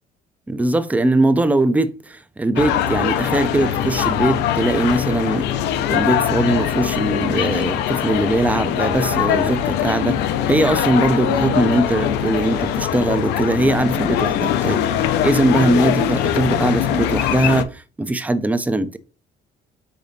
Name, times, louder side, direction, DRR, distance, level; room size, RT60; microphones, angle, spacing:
voice 1, 0.5-5.5 5.9-19.0, right 2 dB, 10° right, 0.4 m, -20 dB
sound 1, 2.6-17.6, left 10 dB, 85° left, 0.4 m, -21 dB
5.1 x 3.8 x 2.7 m
cardioid pair, 110°, 17 cm